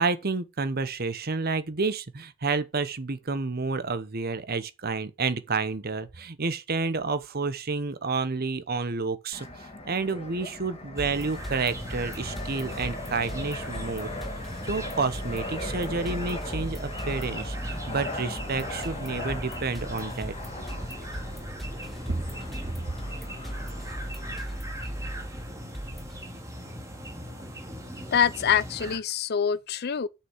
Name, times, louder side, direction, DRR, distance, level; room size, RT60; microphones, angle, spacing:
voice 1, 0.0-14.1 14.6-20.3 22.1-22.2, right 4 dB, 45° right, 0.9 m, -30 dB
Fixed-wing aircraft airplane, 9.3-24.6, left 2 dB, 30° left, 1.7 m, -39 dB
sound 1, 11.0-26.2, right 1 dB, ahead, 1.2 m, -39 dB
sound 2, 11.0-29.0, equal, 15° right, 2.2 m, -40 dB
voice 2, 28.1-30.1, left 7 dB, 50° left, 0.5 m, -25 dB
6.8 x 5.7 x 7.2 m
head